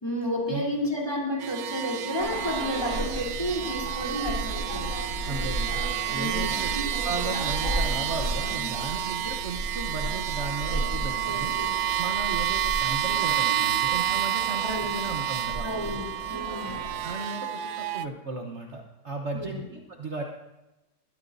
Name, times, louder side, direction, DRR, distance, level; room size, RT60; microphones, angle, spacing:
voice 1, 0.0-4.9 6.1-6.7 8.5-8.7 11.2-11.7 14.6-15.0 15.6-16.1 16.3-16.8 19.3-19.6, left 1 dB, 15° left, -3 dB, 3.5 m, -31 dB
sound 1, 1.4-18.1, right 12 dB, 65° right, 0.7 m, -30 dB
sound 2, 2.2-17.1, right 1 dB, 60° left, 6.2 m, -34 dB
voice 2, 5.3-5.8 6.1-6.7 7.0-11.5 12.0-15.7 16.7-20.2, right 3 dB, 50° right, 2 dB, 1.3 m, -35 dB
21.5 x 13.0 x 2.7 m, 1.0 s
omnidirectional pair, 1.6 m